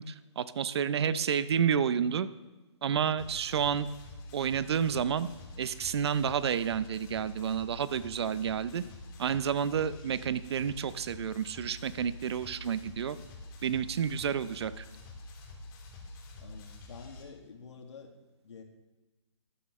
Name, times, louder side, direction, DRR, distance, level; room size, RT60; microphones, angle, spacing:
voice 1, 0.0-2.3 2.8-3.9 4.3-5.3 5.6-8.8 9.2-13.2 13.6-14.8, right 8 dB, 55° right, 15 dB, 0.6 m, -30 dB
sound 1, 3.2-17.2, left 2 dB, 20° left, 2.0 m, -47 dB
voice 2, 16.4-18.1 18.4-18.6, left 5 dB, 65° left, 2 dB, 2.1 m, -48 dB
13.5 x 12.5 x 3.2 m, 1.2 s
hypercardioid pair, 155°, 16 cm